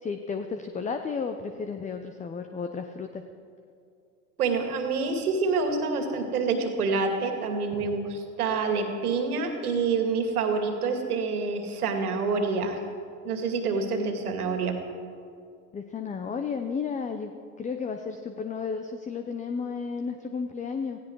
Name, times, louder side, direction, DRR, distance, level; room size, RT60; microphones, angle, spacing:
voice 1, 0.0-3.2 7.8-7.9 15.7-17.3 17.6-21.0, left 5 dB, 15° left, 7 dB, 0.8 m, -33 dB
voice 2, 4.4-12.8 13.2-14.8, right 4 dB, 75° right, 5 dB, 2.5 m, -27 dB
16.5 x 16.0 x 4.7 m, 2.4 s
hypercardioid pair, 90°, 44 cm